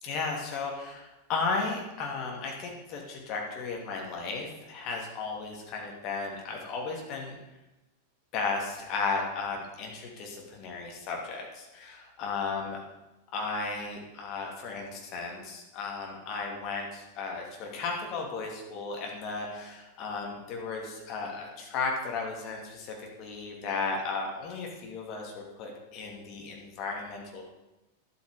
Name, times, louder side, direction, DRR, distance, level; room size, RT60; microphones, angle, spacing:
voice 1, 0.0-7.4 8.3-12.8 13.3-27.4, left 4 dB, 40° left, 0 dB, 2.7 m, -35 dB
11.5 x 8.2 x 5.1 m, 1.0 s
figure-of-eight pair, 90°, 0 cm